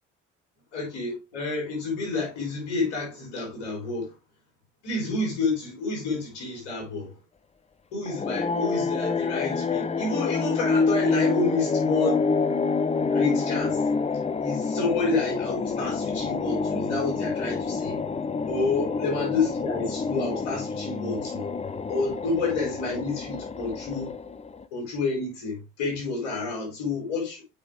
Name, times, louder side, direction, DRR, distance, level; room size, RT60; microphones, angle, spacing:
voice 1, 0.7-4.1 4.8-7.1 7.9-12.2 13.1-13.8 14.4-18.0 18.5-21.5 21.9-24.1 24.7-27.4, left 3 dB, 80° left, 4.8 m, -29 dB
sound 1, 8.1-24.6, left 4 dB, 20° left, 0.7 m, -27 dB
8.4 x 5.1 x 3.3 m
hypercardioid pair, 55°, 35 cm